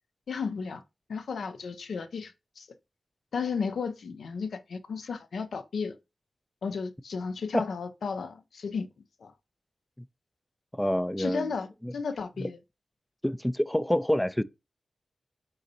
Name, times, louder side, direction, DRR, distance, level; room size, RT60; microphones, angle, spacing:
voice 1, 0.3-0.8 1.1-2.7 3.3-6.0 6.6-8.9 9.2-9.3 11.2-12.6, left 5 dB, 80° left, 0.5 m, -34 dB
voice 2, 10.7-11.5 11.8-11.9 12.4-12.5 13.2-14.4, left 1 dB, 10° left, 0.4 m, -27 dB
4.1 x 3.8 x 2.7 m
cardioid pair, 40°, 0 cm